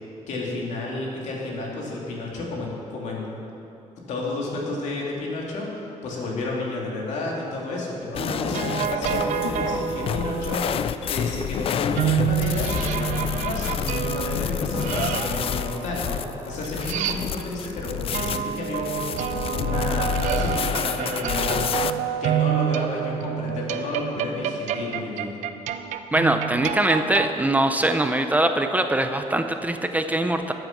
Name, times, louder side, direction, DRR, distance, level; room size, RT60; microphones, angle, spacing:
voice 1, 0.3-3.3 4.0-16.2 16.4-21.7 22.2-25.3, left 2 dB, 75° left, -2 dB, 2.7 m, -31 dB
sound 1, 8.1-21.9, left 9 dB, 50° left, 0.4 m, -29 dB
sound 2, 8.2-10.7 12.0-17.7 18.1-27.3, right 9 dB, 90° right, 0.6 m, -28 dB
voice 2, 26.1-30.5, right 1 dB, 10° right, 7 dB, 0.5 m, -22 dB
13.5 x 8.1 x 5.9 m, 2.9 s
cardioid pair, 130°, 12 cm